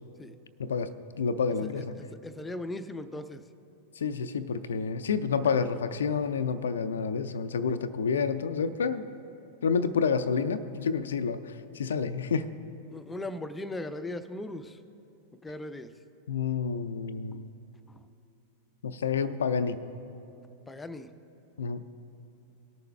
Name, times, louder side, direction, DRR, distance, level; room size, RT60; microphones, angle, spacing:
voice 1, 0.6-2.0 4.0-9.0 9.6-12.5 16.3-17.5 18.8-19.8 21.6-21.8, left 5 dB, 65° left, 12 dB, 0.4 m, -29 dB
voice 2, 1.6-3.4 5.6-5.8 12.9-14.8 15.4-15.9 20.7-21.1, left 1 dB, 10° left, 11 dB, 0.6 m, -38 dB
19.5 x 6.8 x 3.3 m, 3.0 s
figure-of-eight pair, 90°, 0 cm